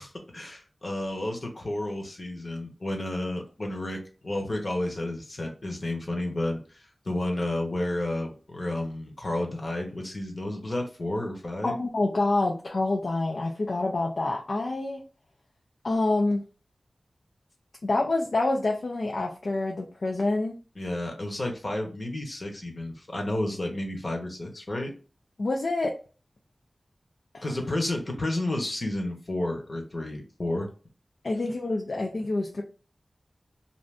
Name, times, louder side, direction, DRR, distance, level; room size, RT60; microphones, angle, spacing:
voice 1, 0.0-11.8 20.8-24.9 27.4-30.7, left 1 dB, 45° left, 2 dB, 1.0 m, -31 dB
voice 2, 11.6-15.0 15.8-16.4 17.8-20.6 25.4-25.9 27.3-27.4 31.2-32.6, left 2 dB, 65° left, 0 dB, 0.5 m, -27 dB
2.6 x 2.5 x 3.3 m, 0.36 s
wide cardioid pair, 75°, 0 cm